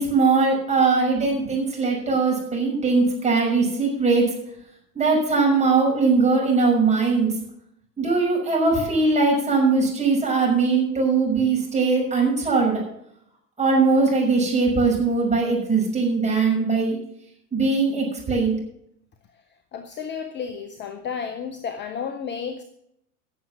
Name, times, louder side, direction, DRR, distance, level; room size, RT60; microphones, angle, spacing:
voice 1, 0.0-4.2 4.9-7.3 8.0-12.8 13.6-17.0 17.5-18.5, right 4 dB, 15° right, -2 dB, 6.0 m, -20 dB
voice 2, 19.7-22.6, left 6 dB, 25° left, 9 dB, 0.8 m, -32 dB
15.5 x 7.1 x 6.3 m, 0.75 s
figure-of-eight pair, 80°, 46 cm